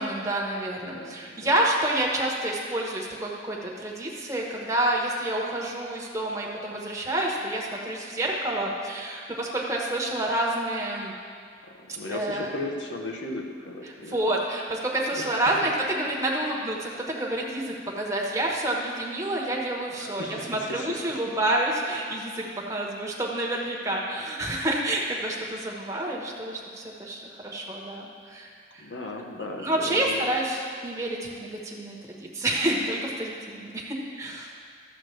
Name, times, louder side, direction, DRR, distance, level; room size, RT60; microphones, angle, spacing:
voice 1, 0.0-11.1 12.1-12.5 14.0-28.9 29.6-34.5, right 1 dB, 15° right, -2 dB, 1.1 m, -28 dB
voice 2, 0.8-1.5 11.7-14.1 15.1-15.6 20.0-21.2 22.4-22.7 28.8-30.3, left 2 dB, 70° left, 1 dB, 1.0 m, -36 dB
12.0 x 7.7 x 3.3 m, 2.1 s
head